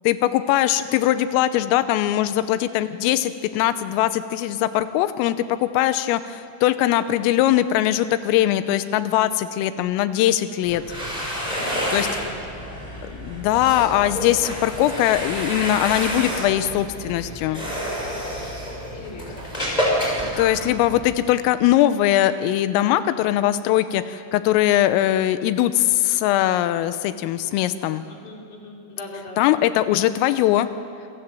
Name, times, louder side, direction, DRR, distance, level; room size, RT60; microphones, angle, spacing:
voice 1, 0.1-10.8 11.9-12.1 13.1-17.6 20.4-28.0 29.4-30.7, left 13 dB, 90° left, 12 dB, 3.5 m, -21 dB
voice 2, 2.3-2.9 8.3-8.9 11.3-13.6 17.5-18.3 18.9-19.8 20.2-20.4 28.1-29.4, left 2 dB, 40° left, 0 dB, 4.7 m, -41 dB
sound 1, 10.6-21.3, equal, 5° left, 5.8 m, -29 dB
28.0 x 26.0 x 7.6 m, 2.5 s
omnidirectional pair, 5.8 m